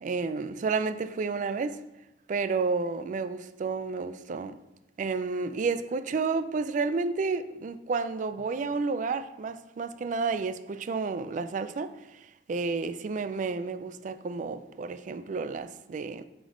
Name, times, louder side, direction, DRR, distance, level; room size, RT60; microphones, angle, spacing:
voice 1, 0.0-1.8 2.3-4.6 5.0-12.2 12.5-16.2, right 4 dB, 45° right, 0.3 m, -31 dB
8.8 x 3.5 x 3.8 m
head